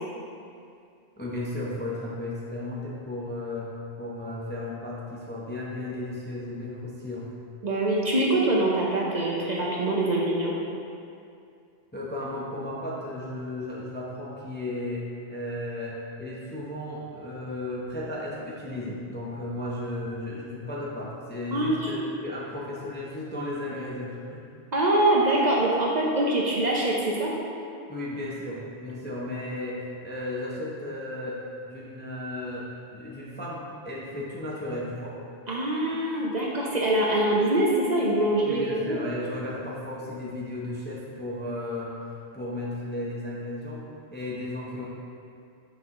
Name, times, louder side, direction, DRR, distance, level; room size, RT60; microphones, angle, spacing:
voice 1, 1.2-7.3 11.9-24.4 27.9-35.2 38.5-42.0 42.3-43.8 44.1-44.9, left 1 dB, 15° left, -5 dB, 0.5 m, -34 dB
voice 2, 7.6-10.5 21.5-21.9 24.7-27.3 35.5-39.0, right 1 dB, 45° right, -3 dB, 0.7 m, -24 dB
6.0 x 4.6 x 3.6 m, 2.4 s
omnidirectional pair, 1.1 m